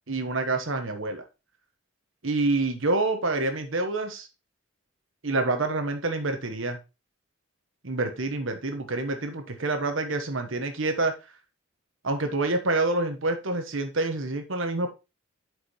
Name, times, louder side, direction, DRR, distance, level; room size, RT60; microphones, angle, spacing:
voice 1, 0.1-1.2 2.2-4.3 5.2-6.8 7.8-11.1 12.0-14.9, right 2 dB, 70° right, 7 dB, 1.2 m, -27 dB
8.3 x 4.8 x 3.0 m, 0.26 s
head